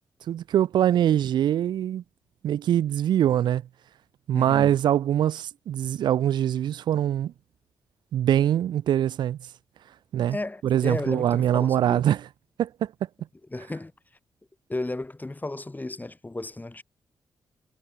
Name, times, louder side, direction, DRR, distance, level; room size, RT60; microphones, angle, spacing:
voice 1, 0.3-2.0 2.4-3.6 4.3-7.3 8.1-9.4 10.1-10.4 10.6-12.3 12.6-12.9, right 11 dB, 80° right, 0.9 m, -23 dB
voice 2, 4.3-4.7 10.3-12.0 13.5-13.9 14.7-16.8, left 2 dB, 25° left, 5.2 m, -34 dB
supercardioid pair, 45°, 8 cm